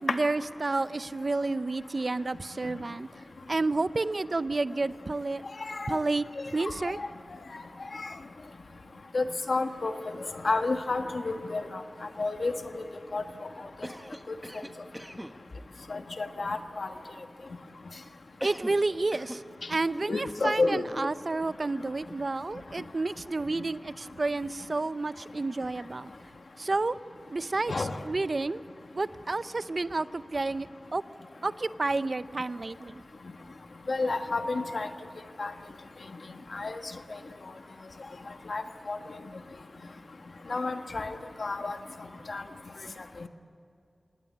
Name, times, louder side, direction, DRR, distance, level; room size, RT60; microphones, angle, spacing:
voice 1, 0.0-3.1 3.5-5.4 5.9-6.3 6.5-7.0 18.4-19.4 19.7-26.1 26.6-26.9 27.3-28.6 28.9-31.0 31.4-33.0, right 3 dB, 60° right, 15 dB, 0.6 m, -30 dB
voice 2, 5.6-6.0 6.6-6.7 7.0-7.1 7.9-8.1 9.1-9.9 10.4-11.8 12.2-12.8 13.1-13.2 14.3-14.4 15.9-16.9 20.1-20.8 27.7-27.9 33.9-34.9 35.4-35.5 36.5-36.8 38.5-38.6 38.9-39.0 40.5-41.8 42.3-42.4 43.2-43.3, left 3 dB, 75° left, 7 dB, 1.3 m, -30 dB
Cough, 13.8-15.4 18.4-18.9 19.1-19.5, equal, 10° right, 1.3 m, -40 dB
26.5 x 18.5 x 8.6 m, 2.5 s
wide cardioid pair, 45°, 0 cm